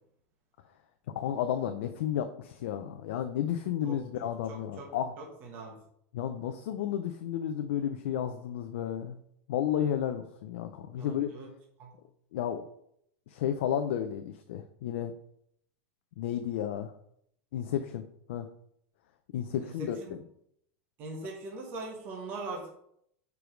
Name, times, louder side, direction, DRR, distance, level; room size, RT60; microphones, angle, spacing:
voice 1, 1.1-5.1 6.1-9.2 9.5-11.3 12.3-12.6 13.3-15.1 16.2-16.9 17.5-18.0 18.3-18.5 19.3-20.2, left 10 dB, 60° left, 7 dB, 0.5 m, -32 dB
voice 2, 4.5-4.9 5.2-5.8 11.0-11.5 11.8-11.9 19.6-20.2 21.0-22.7, right 2 dB, 25° right, 0 dB, 1.1 m, -41 dB
5.0 x 4.7 x 5.0 m, 0.71 s
supercardioid pair, 180°, 7 cm